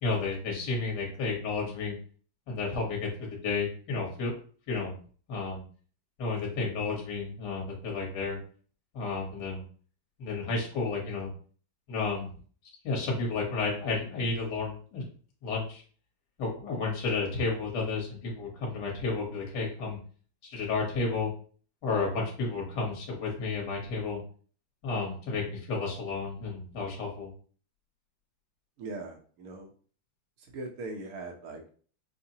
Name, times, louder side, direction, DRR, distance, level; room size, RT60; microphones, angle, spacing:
voice 1, 0.0-1.9 2.5-4.3 4.7-5.0 5.3-5.6 6.2-8.4 8.9-9.6 10.2-11.3 11.9-12.3 12.8-15.0 15.4-15.8 16.4-20.0 20.4-21.3 21.8-24.2 24.8-27.3, left 3 dB, 55° left, -1 dB, 1.6 m, -32 dB
voice 2, 28.8-29.7 30.4-31.7, right 2 dB, 60° right, 3 dB, 1.0 m, -40 dB
5.6 x 2.1 x 2.7 m, 0.43 s
omnidirectional pair, 2.3 m